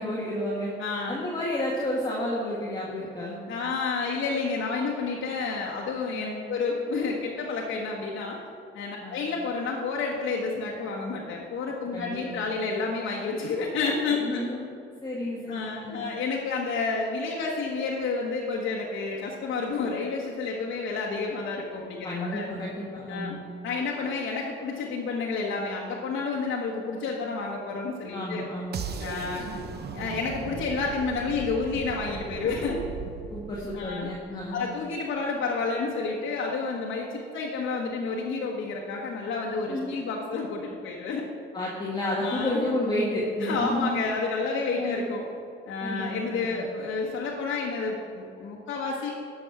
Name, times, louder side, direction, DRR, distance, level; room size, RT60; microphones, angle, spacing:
voice 1, 0.0-0.7 1.1-3.4 6.1-6.5 9.0-9.2 11.9-12.5 14.1-14.7 15.0-16.0 22.0-23.4 28.1-28.8 33.3-34.6 39.7-40.0 41.5-44.0 44.8-45.1 45.8-46.6, left 1 dB, 20° left, -6 dB, 1.9 m, -31 dB
voice 2, 0.8-1.2 3.5-8.4 8.7-14.5 15.5-22.5 23.1-23.4 23.6-28.5 29.0-29.5 29.9-32.8 33.7-34.1 34.5-41.2 42.2-42.6 43.4-45.2 45.7-49.1, left 4 dB, 70° left, -3 dB, 1.3 m, -30 dB
sound 1, 28.7-34.7, right 6 dB, 55° right, 0.8 m, -38 dB
11.0 x 6.3 x 5.9 m, 2.6 s
cardioid pair, 90°, 20 cm